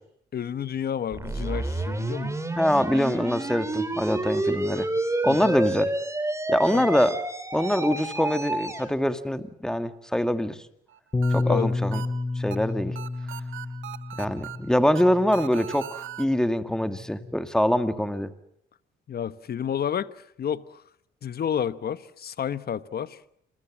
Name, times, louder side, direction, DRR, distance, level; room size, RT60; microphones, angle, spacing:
voice 1, 0.3-2.4 5.3-5.5 6.7-6.9 11.4-11.7 19.1-20.1 20.4-20.8 21.2-23.2, left 8 dB, 50° left, 15 dB, 1.3 m, -30 dB
sound 1, 1.1-8.9, right 2 dB, 15° right, 3.4 m, -29 dB
voice 2, 2.6-4.9 5.2-5.9 6.5-7.2 7.5-10.6 11.3-12.0 12.4-13.0 14.2-18.3, equal, 5° left, 10 dB, 2.0 m, -24 dB
sound 2, 10.9-16.3, right 12 dB, 80° right, 1.5 m, -40 dB
Bass guitar, 11.1-15.6 16.4-17.4, left 3 dB, 20° left, 1.2 m, -30 dB
28.0 x 22.5 x 7.5 m, 0.73 s
cardioid pair, 90°, 20 cm